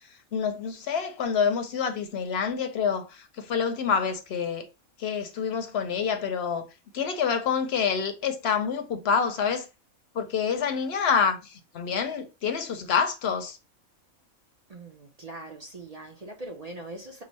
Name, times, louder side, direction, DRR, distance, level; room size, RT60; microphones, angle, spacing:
voice 1, 0.3-4.7 5.0-6.6 6.9-9.7 10.1-13.6, left 6 dB, 60° left, 0.8 m, -27 dB
voice 2, 14.7-17.2, right 2 dB, 45° right, 0.5 m, -41 dB
5.0 x 2.0 x 3.9 m
omnidirectional pair, 1.4 m